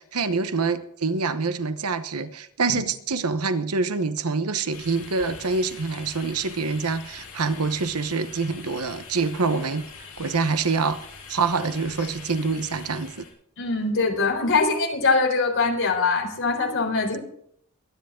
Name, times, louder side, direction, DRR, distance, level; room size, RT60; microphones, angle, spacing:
voice 1, 0.0-9.9 10.2-11.0 11.3-13.2, right 4 dB, 80° right, 1.1 m, -26 dB
sound 1, 4.7-13.3, left 5 dB, 80° left, 6.8 m, -43 dB
voice 2, 13.6-17.2, left 4 dB, 60° left, 4.1 m, -23 dB
23.0 x 10.5 x 3.8 m
head